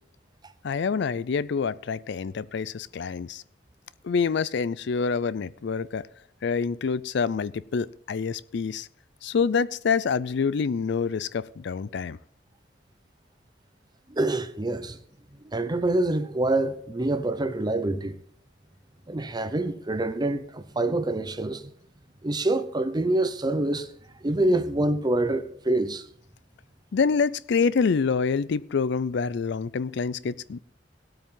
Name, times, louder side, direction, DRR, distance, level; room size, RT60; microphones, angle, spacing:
voice 1, 0.6-3.4 4.0-6.0 6.4-8.9 9.2-12.2 26.9-30.6, left 5 dB, 65° left, 0.4 m, -26 dB
voice 2, 14.1-15.0 15.4-18.2 19.1-21.7 22.2-23.9 24.2-26.1, right 2 dB, 25° right, 0.8 m, -26 dB
18.0 x 8.6 x 3.8 m
head